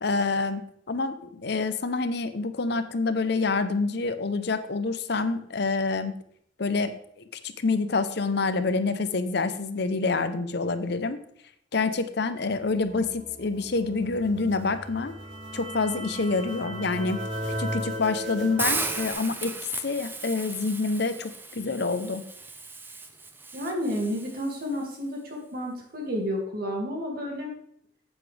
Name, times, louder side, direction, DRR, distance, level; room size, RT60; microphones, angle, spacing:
voice 1, 0.0-0.6 0.9-6.1 6.6-6.9 7.3-11.2 11.7-15.1 15.5-17.2 17.6-19.6 19.8-22.2, left 3 dB, 60° left, 11 dB, 0.7 m, -27 dB
sound 1, 12.6-19.1, equal, 75° right, 2.5 m, -36 dB
Hiss, 18.6-24.7, right 3 dB, 10° right, 0.6 m, -35 dB
voice 2, 23.5-27.5, equal, 50° right, 0 dB, 2.4 m, -31 dB
9.6 x 8.4 x 3.4 m, 0.68 s
head